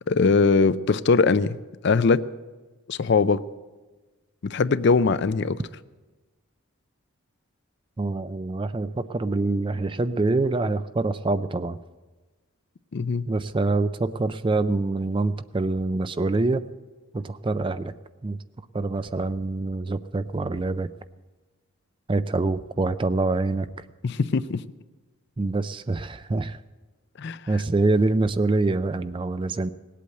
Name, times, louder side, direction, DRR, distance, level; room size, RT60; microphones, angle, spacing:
voice 1, 0.1-1.6 1.8-2.3 2.9-3.4 4.4-5.6 12.9-13.3 24.0-24.6 27.2-27.4, left 4 dB, 50° left, 15 dB, 0.4 m, -21 dB
voice 2, 8.0-11.8 13.3-16.6 17.1-17.9 18.2-18.4 18.7-20.9 22.1-23.9 25.4-26.6 27.5-29.7, right 2 dB, 25° right, 13 dB, 0.4 m, -25 dB
18.5 x 8.4 x 7.8 m, 1.3 s
head